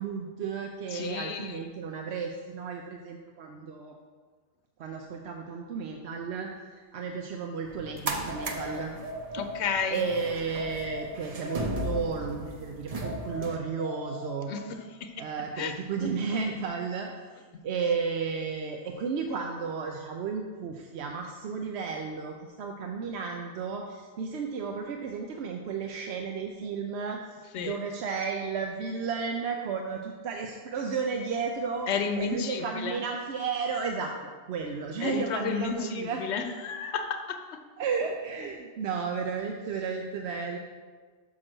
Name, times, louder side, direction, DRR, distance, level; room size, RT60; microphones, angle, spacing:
voice 1, 0.0-4.0 4.8-9.0 9.9-14.5 15.2-17.1 17.3-31.9 32.2-34.1 34.5-36.2 37.8-40.6, right 5 dB, 75° right, 2 dB, 0.9 m, -33 dB
voice 2, 0.9-1.6 9.3-10.0 14.5-14.6 15.0-15.1 15.5-15.7 16.0-16.1 27.5-27.8 31.9-33.0 35.0-37.4, left 6 dB, 85° left, 7 dB, 1.0 m, -32 dB
sound 1, 7.7-13.6, right 2 dB, 40° right, 0.7 m, -36 dB
sound 2, 8.3-10.0 10.6-12.5 13.0-14.9, left 2 dB, 15° left, 0.6 m, -40 dB
6.5 x 6.0 x 6.1 m, 1.5 s
omnidirectional pair, 1.1 m